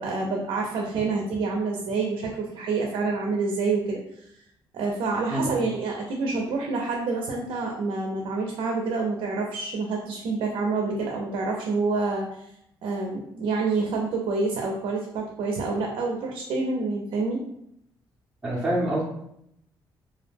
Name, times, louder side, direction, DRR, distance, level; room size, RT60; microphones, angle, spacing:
voice 1, 0.0-4.0 4.7-12.4 12.8-17.4, right 3 dB, 70° right, 0 dB, 0.4 m, -27 dB
voice 2, 18.4-19.0, right 1 dB, 15° right, -9 dB, 0.5 m, -25 dB
2.3 x 2.0 x 3.3 m, 0.75 s
cardioid pair, 180°, 9 cm